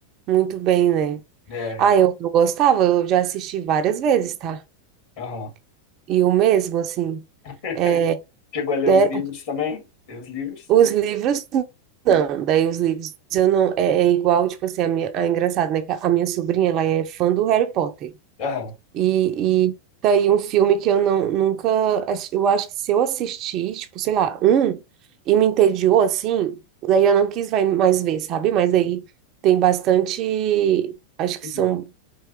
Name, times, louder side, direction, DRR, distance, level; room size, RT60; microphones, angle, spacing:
voice 1, 0.3-1.2 1.8-4.6 6.1-7.2 7.8-8.2 8.9-9.2 10.7-11.6 12.1-18.1 19.0-19.7 20.0-24.8 25.3-29.0 29.4-31.9, right 9 dB, 35° right, 0.5 m, -20 dB
voice 2, 1.5-1.8 5.2-5.5 7.4-8.1 8.5-10.6 18.4-18.7 31.4-31.6, left 5 dB, 50° left, 2.8 m, -28 dB
4.6 x 3.0 x 3.0 m
figure-of-eight pair, 90°, 0 cm